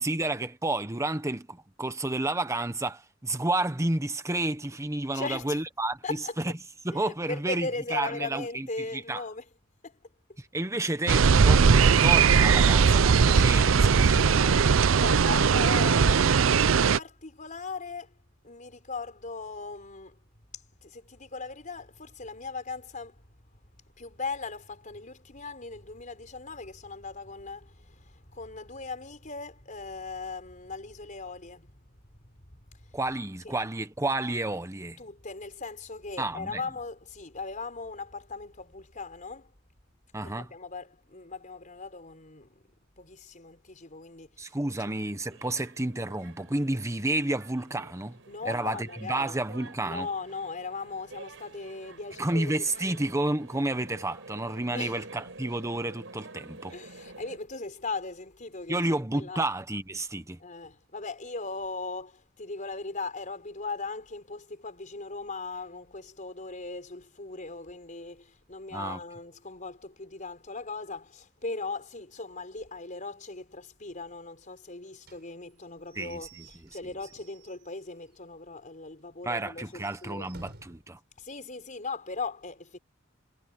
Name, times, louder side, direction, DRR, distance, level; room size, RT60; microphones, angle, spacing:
voice 1, 0.0-6.0 6.4-6.5 6.8-8.7 8.9-9.2 10.4-14.6 32.9-35.0 36.2-36.6 40.1-40.5 44.4-48.2 48.5-50.1 52.2-56.7 58.7-60.4 68.7-69.0 76.0-76.2 79.3-81.0, right 2 dB, 15° right, 1.1 m, -31 dB
voice 2, 5.1-5.6 6.0-6.4 6.9-9.5 9.8-10.0 14.9-20.2 20.5-23.6 23.9-33.0 33.4-33.5 35.0-39.5 40.2-42.7 43.0-44.5 44.8-44.9 48.3-49.4 49.8-52.9 54.7-55.1 56.7-59.5 60.4-80.3 81.2-82.8, left 3 dB, 40° left, 4.9 m, -39 dB
sound 1, 11.1-17.0, right 6 dB, 85° right, 0.6 m, -20 dB
sound 2, 44.8-57.4, right 3 dB, 70° right, 6.1 m, -49 dB
Slam / Squeak / Wood, 75.0-78.2 78.6-78.7 79.0-79.1 79.6-80.9, right 3 dB, 55° right, 5.6 m, -54 dB
head